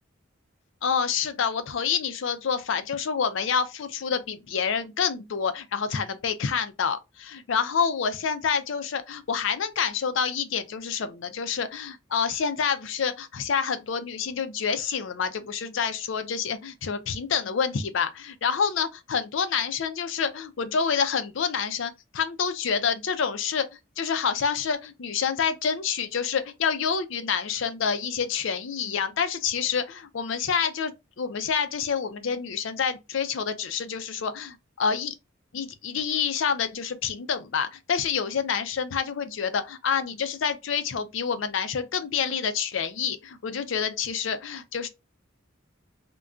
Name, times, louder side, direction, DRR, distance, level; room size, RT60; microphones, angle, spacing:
voice 1, 0.8-23.7 24.0-35.1 35.5-44.9, left 6 dB, 70° left, 0.5 m, -28 dB
2.3 x 2.2 x 3.7 m
head